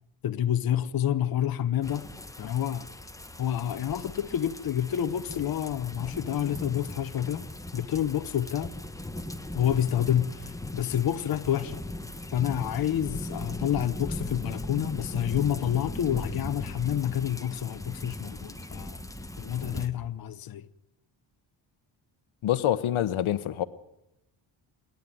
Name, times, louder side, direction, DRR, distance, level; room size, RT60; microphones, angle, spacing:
voice 1, 0.2-2.1 2.4-2.9 3.4-7.5 7.7-8.7 9.5-11.9 12.3-19.0 19.4-20.7, left 10 dB, 45° left, 0.9 m, -28 dB
sound 1, 1.8-19.9, left 1 dB, 5° left, 1.0 m, -39 dB
voice 2, 22.4-23.6, left 12 dB, 80° left, 1.0 m, -26 dB
27.0 x 10.5 x 9.2 m
cardioid pair, 120°, 48 cm